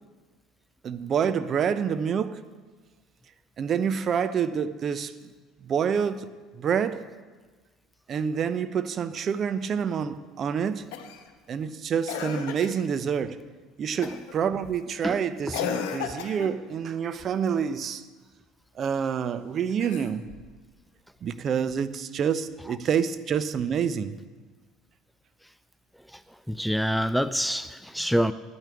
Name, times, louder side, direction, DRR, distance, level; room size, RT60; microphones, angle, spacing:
voice 1, 0.8-2.4 3.6-5.1 5.6-6.3 6.5-7.0 8.1-10.8 11.5-13.4 13.8-18.0 18.8-20.3 21.2-24.2, right 7 dB, 40° right, 0.7 m, -27 dB
Cough, 10.9-11.3 12.1-12.8 14.0-14.3 15.5-16.6 19.7-20.5 21.9-22.0, left 7 dB, 65° left, 1.2 m, -34 dB
voice 2, 26.5-28.3, equal, ahead, 0.4 m, -26 dB
10.0 x 9.0 x 9.0 m
figure-of-eight pair, 60°, 0 cm